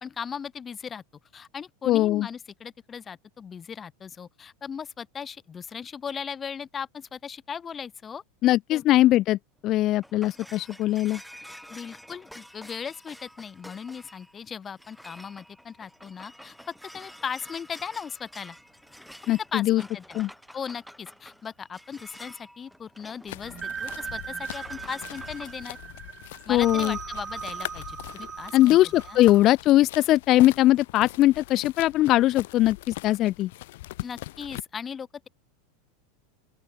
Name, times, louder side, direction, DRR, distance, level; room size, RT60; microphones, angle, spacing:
voice 1, 0.0-1.0 1.3-8.2 8.7-8.9 11.7-18.6 19.5-20.2 20.5-25.8 26.4-29.2 34.0-35.3, left 7 dB, 25° left, 1.7 m, -38 dB
voice 2, 1.9-2.3 8.4-11.2 19.3-19.8 20.1-20.3 26.5-27.0 28.5-33.5, left 15 dB, 45° left, 0.3 m, -21 dB
sound 1, 9.6-25.6, equal, ahead, 4.0 m, -49 dB
sound 2, 23.3-34.6, left 18 dB, 70° left, 1.2 m, -41 dB
sound 3, 23.4-29.4, right 6 dB, 25° right, 0.8 m, -38 dB
open air
supercardioid pair, 115°, 0 cm